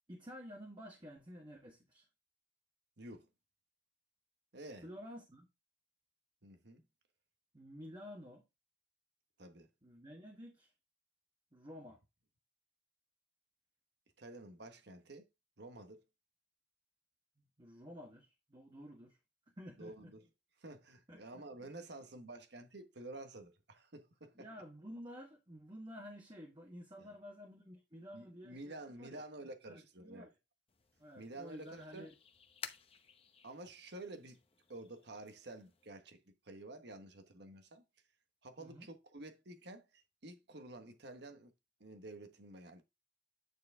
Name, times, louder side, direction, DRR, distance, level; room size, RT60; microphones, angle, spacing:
voice 1, 0.1-2.0 4.8-5.5 7.5-8.4 9.8-10.7 11.5-12.0 17.4-19.2 19.6-20.1 21.1-21.4 24.3-29.2 29.7-30.3 31.0-32.1 38.6-38.9, equal, 25° right, 1.5 m, -51 dB
voice 2, 3.0-3.3 4.5-4.9 6.4-6.8 9.4-9.7 14.2-15.3 15.6-16.0 19.8-20.2 20.6-24.5 27.0-27.1 28.1-30.3 31.1-32.1 33.4-34.4 34.7-37.8 38.4-41.5 41.8-42.8, right 2 dB, 65° right, 1.3 m, -50 dB
sound 1, 30.7-35.9, left 6 dB, 30° left, 0.9 m, -55 dB
9.6 x 4.6 x 3.6 m
head